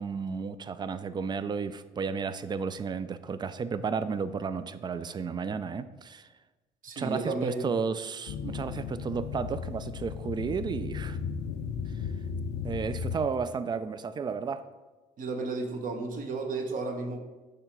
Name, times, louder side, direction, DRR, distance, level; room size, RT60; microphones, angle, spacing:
voice 1, 0.0-6.3 7.0-11.2 12.6-14.6, right 5 dB, 25° right, 13 dB, 0.4 m, -33 dB
voice 2, 6.8-7.7 15.2-17.2, right 3 dB, 50° right, 4 dB, 1.0 m, -33 dB
sound 1, 8.3-13.3, left 6 dB, 90° left, 0.6 m, -35 dB
6.6 x 3.3 x 5.9 m, 1.2 s
cardioid pair, 110°, 17 cm